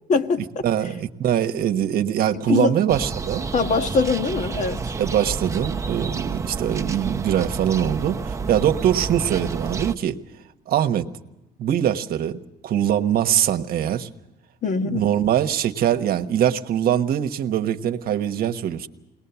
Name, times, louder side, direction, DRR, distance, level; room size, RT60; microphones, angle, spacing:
voice 1, 0.1-0.6 2.5-2.7 3.5-4.8 14.6-15.1, left 4 dB, 45° left, 1.6 m, -22 dB
voice 2, 0.6-3.5 5.0-10.2 10.7-11.1 11.6-14.1 14.8-18.9, right 10 dB, 65° right, 1.2 m, -22 dB
sound 1, 2.9-9.9, right 4 dB, 20° right, 0.9 m, -30 dB
21.5 x 19.5 x 7.0 m
cardioid pair, 110°, 17 cm